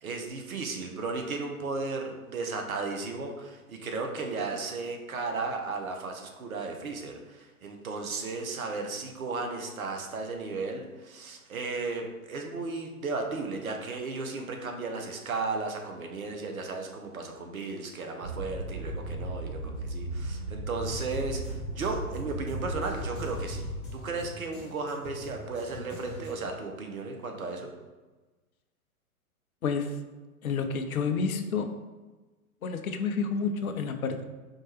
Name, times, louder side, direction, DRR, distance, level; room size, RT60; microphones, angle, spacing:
voice 1, 0.0-23.7 23.9-27.7, right 3 dB, 65° right, 3 dB, 0.8 m, -35 dB
sound 1, 18.2-24.0, right 1 dB, 40° right, 0.8 m, -36 dB
sound 2, 21.1-26.6, left 1 dB, 10° left, 0.4 m, -45 dB
voice 2, 29.6-30.0 30.4-31.7 32.6-34.2, left 5 dB, 70° left, 7 dB, 0.6 m, -29 dB
4.5 x 2.9 x 3.0 m, 1.2 s
figure-of-eight pair, 110°, 45 cm